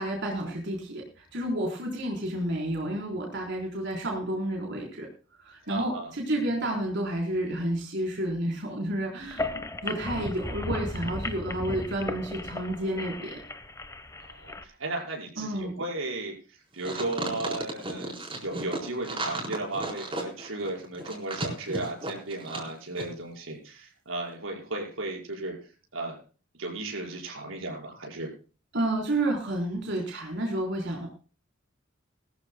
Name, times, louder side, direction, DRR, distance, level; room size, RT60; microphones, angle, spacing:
voice 1, 0.0-5.1 5.4-9.5 9.8-13.4 15.4-15.7 28.7-31.1, right 1 dB, 60° right, 0 dB, 4.2 m, -30 dB
voice 2, 5.7-6.1 14.2-25.6 25.9-26.2 26.6-28.3, right 2 dB, 85° right, 0 dB, 5.7 m, -35 dB
sound 1, 9.2-14.6, left 2 dB, 15° left, 1.2 m, -35 dB
sound 2, 16.8-22.7 23.0-23.1, right 2 dB, 25° right, 4.5 m, -34 dB
21.0 x 14.0 x 2.3 m, 0.37 s
head